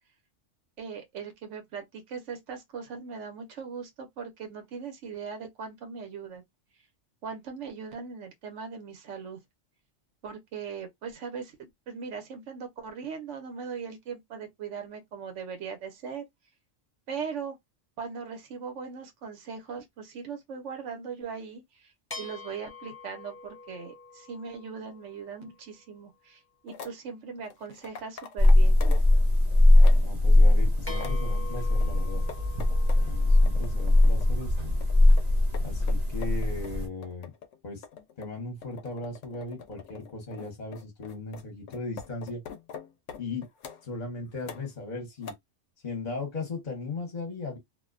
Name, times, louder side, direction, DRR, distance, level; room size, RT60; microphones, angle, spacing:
voice 1, 0.8-6.4 7.2-9.4 10.2-16.2 17.1-17.6 18.0-21.6 22.2-28.8, right 6 dB, 80° right, 1.1 m, -39 dB
sound 1, 22.1-25.8 30.9-35.2, left 3 dB, 15° left, 0.6 m, -46 dB
sound 2, 26.7-27.0 27.4-29.1 29.5-30.2 30.6-31.3 31.8-33.1 33.5-34.4 34.8-43.9 44.4-44.9 45.2-45.3, left 6 dB, 90° left, 0.9 m, -44 dB
sound 3, 28.4-36.9, left 1 dB, 40° right, 0.7 m, -21 dB
voice 2, 30.0-32.2 33.0-34.7 35.6-37.3 37.6-37.8 38.2-42.4 43.2-43.4 43.8-45.3 45.8-47.6, left 3 dB, 40° left, 1.0 m, -37 dB
2.5 x 2.1 x 2.4 m
omnidirectional pair, 1.2 m